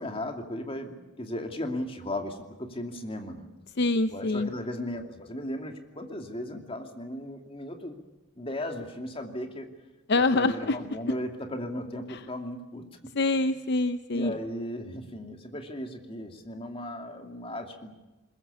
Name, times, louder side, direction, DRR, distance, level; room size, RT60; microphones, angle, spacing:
voice 1, 0.0-3.5 4.1-8.0 8.4-9.7 10.3-12.8 14.1-17.9, left 1 dB, 25° left, 4 dB, 2.6 m, -36 dB
voice 2, 3.8-4.5 10.1-10.8 12.1-12.2 13.2-14.4, left 2 dB, 50° left, 11 dB, 0.7 m, -25 dB
21.5 x 21.5 x 8.5 m, 1.1 s
head